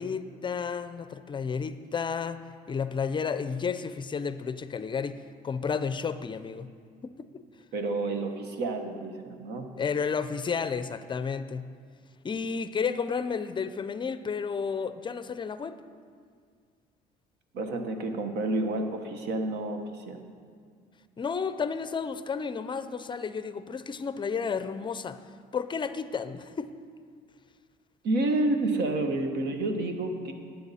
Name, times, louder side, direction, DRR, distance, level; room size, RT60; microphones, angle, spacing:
voice 1, 0.0-2.4 2.7-6.7 7.0-7.4 9.8-11.7 12.2-15.8 21.2-25.2 25.5-26.7, left 6 dB, 30° left, 12 dB, 0.4 m, -32 dB
voice 2, 7.7-9.8 17.5-20.2 28.0-30.3, right 2 dB, 80° right, 5 dB, 1.3 m, -29 dB
17.5 x 7.7 x 4.2 m, 2.1 s
cardioid pair, 110°, 17 cm